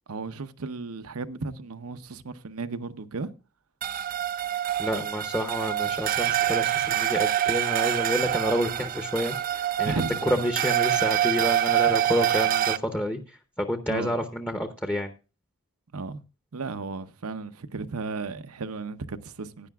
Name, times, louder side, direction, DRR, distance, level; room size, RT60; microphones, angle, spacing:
voice 1, 0.1-3.3 9.8-10.5 13.9-14.2 15.9-16.2 16.5-19.7, right 3 dB, 85° right, 0.8 m, -34 dB
sound 1, 3.8-12.8, right 11 dB, 40° right, 0.4 m, -26 dB
voice 2, 4.8-15.1, equal, 10° left, 0.7 m, -29 dB
16.0 x 10.0 x 2.3 m
head